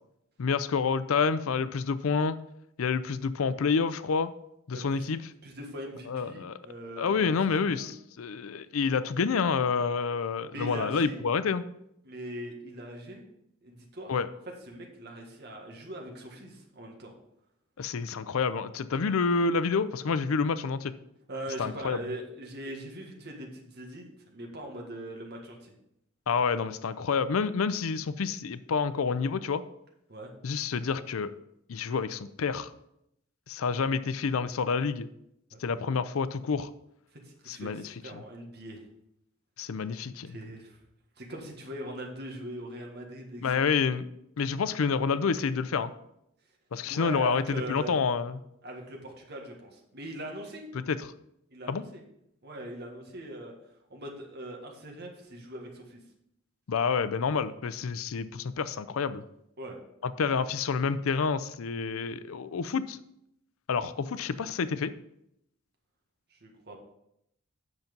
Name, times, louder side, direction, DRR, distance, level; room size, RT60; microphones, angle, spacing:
voice 1, 0.4-2.4 2.8-4.3 4.7-5.2 6.1-6.6 7.0-11.6 14.1-14.3 17.8-20.9 21.6-22.0 26.3-29.6 30.4-31.3 31.7-32.7 33.5-35.1 35.6-36.7 37.5-37.9 39.6-40.4 43.4-44.1 44.4-45.9 46.7-48.4 50.7-51.1 51.7-51.8 56.7-59.2 60.0-63.0 63.7-64.9, left 5 dB, 90° left, 14 dB, 0.5 m, -28 dB
voice 2, 4.7-5.0 5.4-7.4 7.7-7.9 10.5-11.2 12.0-13.2 13.6-14.1 14.7-17.1 21.3-25.7 30.1-30.3 35.5-35.6 37.1-38.8 40.3-40.8 41.2-43.5 46.8-48.0 48.6-50.7 51.5-52.0 52.4-53.5 53.9-56.0 59.6-59.8 66.3-66.8, right 1 dB, 55° right, 1 dB, 1.7 m, -41 dB
8.1 x 5.8 x 5.3 m, 0.79 s
head